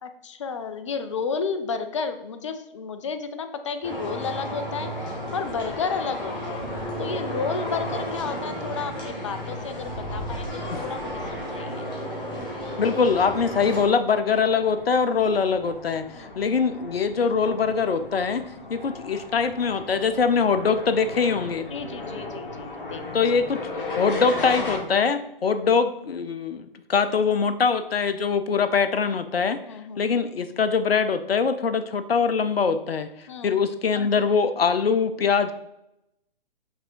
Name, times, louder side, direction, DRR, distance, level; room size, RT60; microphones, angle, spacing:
voice 1, 0.0-6.6 7.0-11.9 15.3-15.4 16.1-16.4 18.6-18.8 21.7-23.0 29.6-30.1 33.3-33.7, left 5 dB, 35° left, 9 dB, 0.4 m, -32 dB
sound 1, 3.8-13.8, equal, 15° left, 1.4 m, -32 dB
voice 2, 12.8-18.4 18.7-21.7 23.1-23.6 24.0-29.6 30.0-35.5, left 5 dB, 80° left, 10 dB, 0.5 m, -23 dB
sound 2, 13.3-24.8, left 2 dB, 60° left, 1.9 m, -37 dB
5.8 x 3.5 x 4.6 m, 0.84 s
figure-of-eight pair, 130°, 29 cm